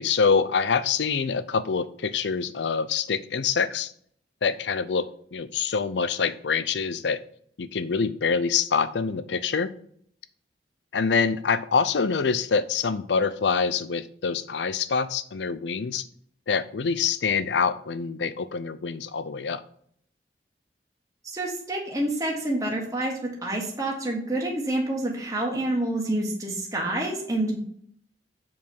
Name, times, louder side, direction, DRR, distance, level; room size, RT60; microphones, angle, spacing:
voice 1, 0.0-3.9 4.4-5.1 5.3-7.2 7.6-9.7 10.9-16.1 16.5-19.6, left 5 dB, 85° left, 14 dB, 0.6 m, -25 dB
voice 2, 21.2-27.6, right 1 dB, 20° right, -2 dB, 1.5 m, -28 dB
7.3 x 4.7 x 5.4 m, 0.64 s
head